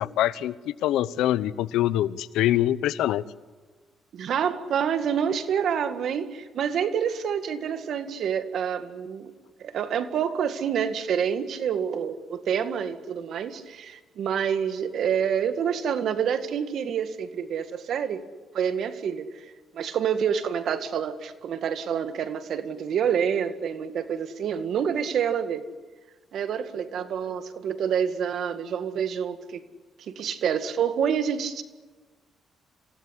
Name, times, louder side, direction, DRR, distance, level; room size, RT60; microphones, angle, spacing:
voice 1, 0.0-3.2, left 13 dB, 90° left, 17 dB, 0.8 m, -24 dB
voice 2, 4.1-9.3 9.6-18.2 18.5-25.7 26.3-29.6 30.1-31.6, right 8 dB, 70° right, 9 dB, 1.9 m, -27 dB
27.0 x 16.5 x 10.0 m, 1.3 s
cardioid pair, 90°, 0 cm